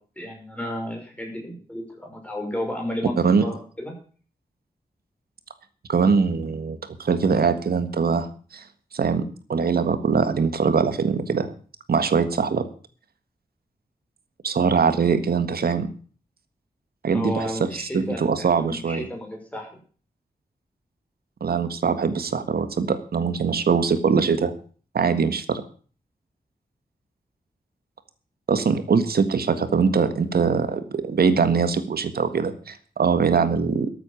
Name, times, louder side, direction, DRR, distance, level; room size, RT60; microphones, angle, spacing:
voice 1, 0.2-3.1 3.4-4.0 17.1-19.7, left 1 dB, 10° left, 1 dB, 5.6 m, -32 dB
voice 2, 5.9-8.3 8.5-8.6 8.9-9.2 9.5-11.5 11.9-12.6 14.4-15.9 17.0-19.1 21.4-24.5 24.9-25.6 28.5-33.9, right 5 dB, 75° right, 11 dB, 1.7 m, -22 dB
13.5 x 8.6 x 7.1 m, 0.41 s
wide cardioid pair, 155°, 16 cm